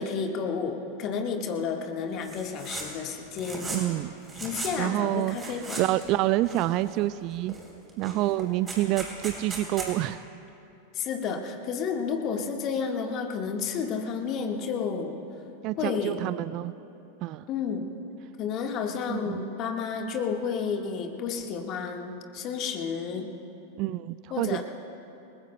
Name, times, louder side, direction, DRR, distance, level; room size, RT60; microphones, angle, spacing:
voice 1, 0.0-3.8 4.4-5.8 10.9-15.2 15.8-16.2 17.5-17.9 18.4-23.3 24.3-24.6, left 6 dB, 35° left, 4 dB, 1.5 m, -31 dB
sound 1, 2.2-2.9 3.2-3.9 4.2-4.8 5.2-6.1 6.4-7.0 7.5-7.6 7.9-9.9, right 3 dB, 15° right, 3.6 m, -37 dB
voice 2, 3.7-4.1 4.8-7.6 8.0-10.2 15.6-16.7 17.2-17.4 19.1-19.4 23.8-24.6, right 15 dB, 40° right, 16 dB, 0.3 m, -28 dB
28.5 x 20.5 x 2.2 m, 2.8 s
figure-of-eight pair, 90°, 0 cm